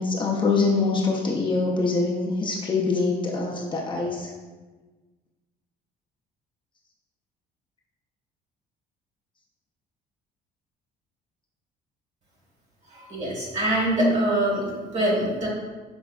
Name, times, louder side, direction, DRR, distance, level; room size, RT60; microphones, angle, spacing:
voice 1, 0.0-4.3, left 3 dB, 30° left, -2 dB, 0.5 m, -24 dB
voice 2, 12.9-14.6 14.9-15.5, right 1 dB, 45° right, -3 dB, 1.4 m, -24 dB
5.1 x 3.2 x 2.4 m, 1.3 s
cardioid pair, 110°, 17 cm